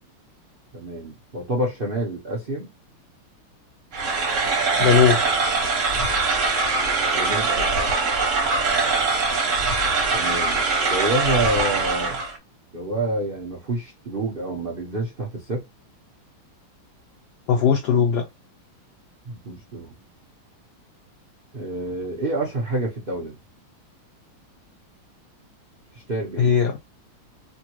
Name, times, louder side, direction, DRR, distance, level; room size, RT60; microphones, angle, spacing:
voice 1, 0.7-2.7 7.1-7.9 10.1-12.2 12.7-15.6 19.2-19.9 21.5-23.4 25.9-26.5, right 1 dB, 75° right, 0.5 m, -28 dB
sound 1, 3.9-12.4, right 4 dB, 50° right, 0.9 m, -22 dB
voice 2, 4.8-5.2 17.5-18.3 26.4-26.8, left 7 dB, 80° left, 0.9 m, -18 dB
3.6 x 2.3 x 2.9 m
omnidirectional pair, 2.4 m